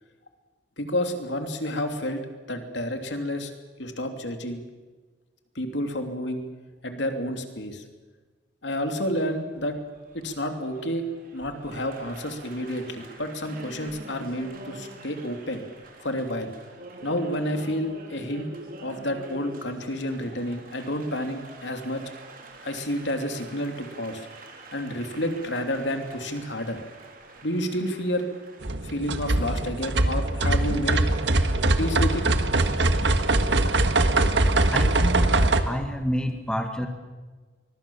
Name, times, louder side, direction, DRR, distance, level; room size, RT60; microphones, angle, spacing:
voice 1, 0.8-2.2 2.5-3.5 3.8-4.6 5.5-6.4 6.8-7.8 8.6-9.8 10.1-11.0 11.3-15.6 16.0-16.5 17.0-18.5 18.8-22.0 22.6-24.3 24.7-26.8 27.4-28.3 28.8-31.0 31.8-32.2, left 1 dB, 70° left, 5 dB, 3.0 m, -30 dB
Applause, 9.0-28.7, right 2 dB, 45° right, 3.8 m, -46 dB
sound 1, 28.6-35.6, right 2 dB, 70° right, 1.6 m, -22 dB
voice 2, 34.7-36.9, equal, 5° left, 5 dB, 1.8 m, -29 dB
23.5 x 23.0 x 7.2 m, 1.3 s
head